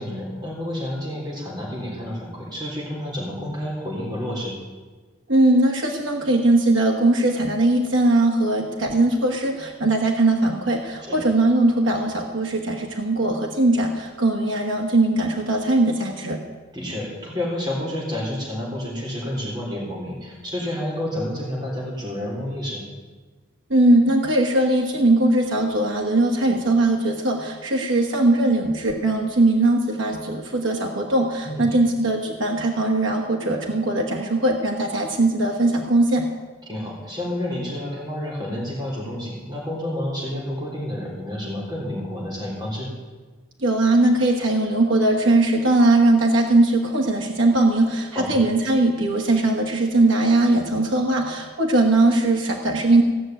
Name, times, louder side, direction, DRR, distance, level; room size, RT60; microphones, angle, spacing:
voice 1, 0.0-4.6 11.1-11.2 16.7-22.8 31.4-31.7 36.7-42.9 48.1-48.4, left 1 dB, 20° right, -4 dB, 3.8 m, -29 dB
voice 2, 5.3-16.4 23.7-36.2 43.6-53.0, right 2 dB, 75° right, 0 dB, 1.5 m, -20 dB
16.5 x 6.4 x 9.1 m, 1.3 s
head